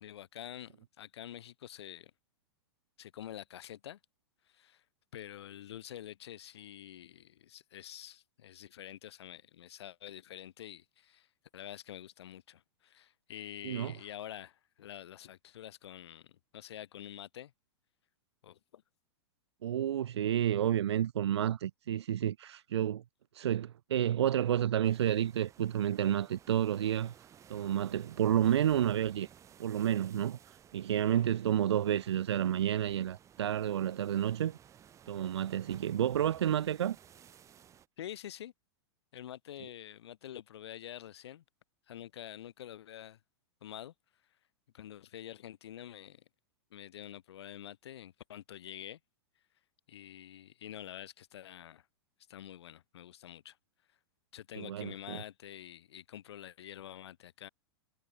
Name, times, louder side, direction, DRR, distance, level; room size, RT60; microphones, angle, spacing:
voice 1, 0.0-2.1 3.0-4.0 4.5-4.8 5.1-11.3 11.5-17.5 18.4-18.8 38.0-38.5 39.1-41.4 41.9-43.2 43.6-43.9 44.7-46.2 46.7-49.0 49.9-51.9 52.3-53.6 54.3-57.5, left 11 dB, 80° left, 1.1 m, -47 dB
voice 2, 19.6-23.0 23.3-27.1 27.5-29.3 29.6-34.6 35.1-37.0 54.6-55.2, right 10 dB, 90° right, 0.6 m, -30 dB
sound 1, 24.8-37.9, right 9 dB, 20° right, 1.2 m, -57 dB
hypercardioid pair, 125°, 14 cm